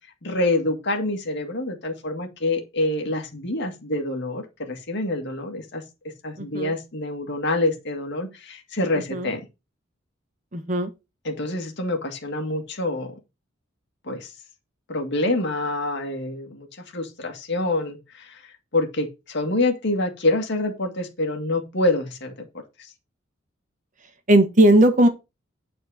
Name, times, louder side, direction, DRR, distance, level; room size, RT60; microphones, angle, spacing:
voice 1, 0.2-5.8 6.2-9.4 11.2-13.1 14.0-14.3 14.9-22.5 22.8-22.9, left 2 dB, 60° left, 2.1 m, -26 dB
voice 2, 6.4-6.7 9.1-9.3 10.5-10.9 24.3-25.1, right 1 dB, 40° right, 1.5 m, -17 dB
9.5 x 4.4 x 6.4 m
head